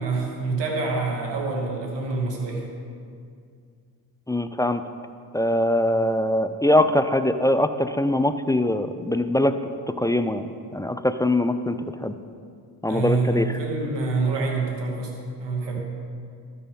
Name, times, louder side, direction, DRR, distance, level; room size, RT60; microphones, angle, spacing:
voice 1, 0.0-2.7 12.9-15.8, right 3 dB, 70° right, 0 dB, 2.3 m, -26 dB
voice 2, 4.3-4.8 5.3-9.5 9.9-12.1 12.8-13.5, left 1 dB, 10° left, 10 dB, 0.4 m, -22 dB
12.5 x 7.0 x 5.3 m, 2.3 s
supercardioid pair, 65°, 44 cm